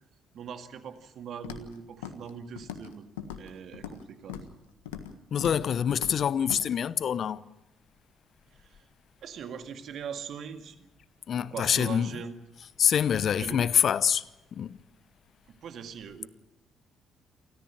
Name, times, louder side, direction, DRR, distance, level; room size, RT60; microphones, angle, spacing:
voice 1, 0.3-3.0 3.4-4.5 8.5-8.9 9.2-10.9 11.3-12.4 13.4-13.6 15.5-16.3, right 7 dB, 60° right, 2.0 m, -41 dB
Walk footsteps, 1.4-1.7 2.0-2.3 2.6-2.9 3.2-4.0 4.3-4.5 4.9-5.1 5.4-5.6 5.9-6.2 6.5-6.6, left 9 dB, 85° left, 1.5 m, -39 dB
voice 2, 5.3-7.4 11.3-12.1 12.8-14.2 14.5-14.8, left 8 dB, 55° left, 0.7 m, -25 dB
28.0 x 14.0 x 8.8 m
hypercardioid pair, 50°, 0 cm